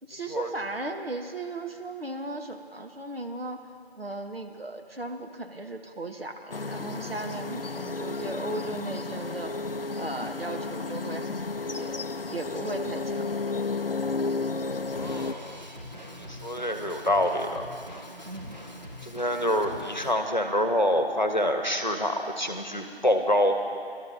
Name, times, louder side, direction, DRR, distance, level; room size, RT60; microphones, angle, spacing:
voice 1, 0.0-3.7 3.9-9.5 10.0-12.0 12.3-13.3 18.2-18.5, right 2 dB, 65° right, 4 dB, 1.2 m, -36 dB
sound 1, 6.5-15.3, left 3 dB, 60° left, 0.5 m, -32 dB
voice 2, 14.9-15.6 16.2-17.7 19.0-23.6, left 1 dB, 45° left, 6 dB, 1.0 m, -26 dB
Drum kit, 15.0-20.1, left 1 dB, 40° right, 1.1 m, -43 dB
29.5 x 12.5 x 2.7 m, 2.4 s
figure-of-eight pair, 180°, 32 cm